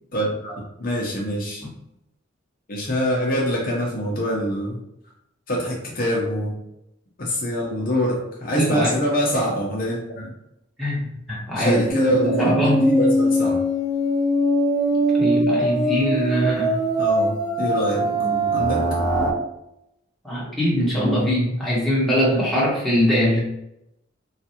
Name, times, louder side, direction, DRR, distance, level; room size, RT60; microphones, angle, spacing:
voice 1, 0.1-1.6 2.7-4.8 5.5-6.6 7.2-10.3 11.6-13.6 17.0-18.1 18.5-18.9, equal, 50° left, -3 dB, 0.7 m, -24 dB
voice 2, 8.5-8.9 10.8-11.8 12.1-12.9 15.1-16.8 18.0-18.9 19.2-19.4 20.2-23.4, equal, ahead, -8 dB, 1.1 m, -22 dB
sound 1, 11.9-19.3, right 1 dB, 20° right, 0.6 m, -21 dB
3.2 x 2.4 x 2.8 m, 0.82 s
head